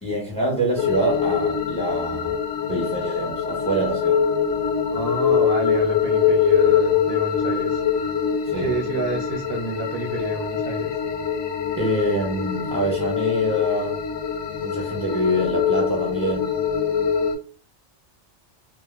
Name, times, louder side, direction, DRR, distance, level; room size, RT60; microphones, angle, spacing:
voice 1, 0.0-2.4 2.7-4.2 8.5-8.7 11.8-14.0 14.6-16.5, right 1 dB, 5° left, -1 dB, 0.5 m, -25 dB
sound 1, 0.8-17.4, left 7 dB, 85° left, 0.9 m, -23 dB
voice 2, 4.9-7.8 8.6-11.0, right 3 dB, 65° right, 1 dB, 0.7 m, -29 dB
2.1 x 2.0 x 3.2 m, 0.38 s
omnidirectional pair, 1.2 m